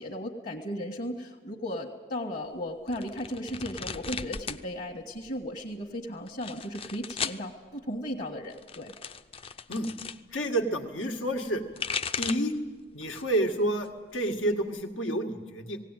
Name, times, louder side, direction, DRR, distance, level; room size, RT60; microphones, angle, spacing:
voice 1, 0.0-8.9, equal, 45° left, -2 dB, 1.6 m, -36 dB
sound 1, 2.9-4.6 4.9-5.6 6.3-7.4 8.4-10.2 11.5-12.6 13.0-13.5 13.8-14.8, left 6 dB, 30° left, 0.5 m, -37 dB
voice 2, 10.3-11.6 12.2-12.5 12.9-15.8, right 1 dB, 85° left, 4 dB, 2.0 m, -29 dB
18.5 x 17.5 x 9.1 m, 1.4 s
head